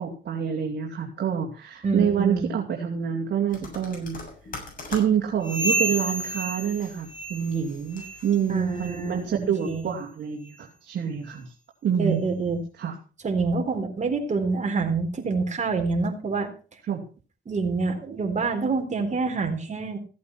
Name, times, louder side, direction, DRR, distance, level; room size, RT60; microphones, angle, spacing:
voice 1, 0.0-4.2 4.9-11.5 11.8-12.2 12.8-12.9 16.9-17.0, right 8 dB, 60° right, 1 dB, 2.8 m, -27 dB
voice 2, 1.8-2.5 8.5-9.8 12.0-12.6 13.2-16.5 17.5-20.0, right 4 dB, 35° right, 4 dB, 3.9 m, -26 dB
sound 1, 3.5-9.3, left 3 dB, 45° left, 7.1 m, -44 dB
sound 2, 5.4-7.6 7.9-8.3 8.7-9.0 9.6-9.7 10.4-10.5 11.3-11.4, right 1 dB, 20° left, 3.0 m, -30 dB
15.5 x 8.4 x 5.9 m, 0.37 s
cardioid pair, 90°, 20 cm